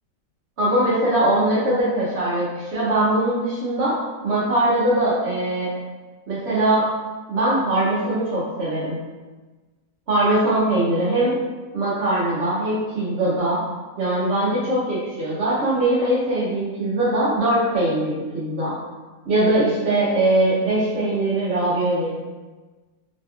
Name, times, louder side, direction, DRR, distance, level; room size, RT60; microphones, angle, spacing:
voice 1, 0.6-3.9 4.2-5.7 6.3-6.8 7.3-9.0 10.1-11.4 11.7-13.6 14.0-18.7 19.3-22.3, right 1 dB, 55° right, -9 dB, 0.7 m, -21 dB
3.3 x 2.8 x 2.3 m, 1.3 s
omnidirectional pair, 1.9 m